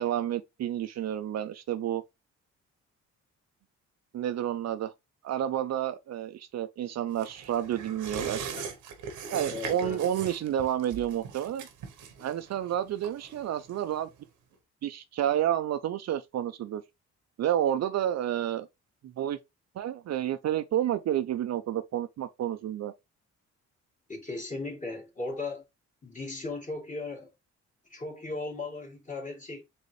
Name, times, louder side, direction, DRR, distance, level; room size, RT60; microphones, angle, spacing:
voice 1, 0.0-2.0 4.1-4.9 5.2-8.5 9.3-11.7 12.2-14.1 14.8-16.8 17.4-18.7 19.0-19.4 19.8-22.9, right 11 dB, 60° right, 0.6 m, -30 dB
sound 1, 7.2-14.2 14.5-14.6, right 6 dB, 85° right, 1.1 m, -41 dB
voice 2, 9.5-10.0 24.1-25.6 26.0-27.3 27.9-29.6, left 3 dB, 25° left, 2.1 m, -37 dB
4.2 x 3.4 x 3.2 m
cardioid pair, 90°, 30 cm